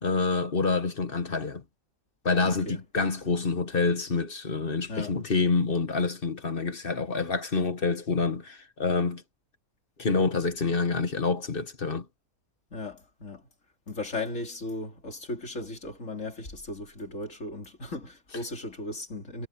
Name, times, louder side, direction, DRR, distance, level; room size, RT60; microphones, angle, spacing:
voice 1, 0.0-1.6 2.2-9.2 10.0-12.1, left 4 dB, 40° left, 1.6 m, -27 dB
voice 2, 2.4-2.8 4.9-5.2 12.7-13.5 13.9-19.5, left 2 dB, 55° left, 4.0 m, -36 dB
omnidirectional pair, 1.6 m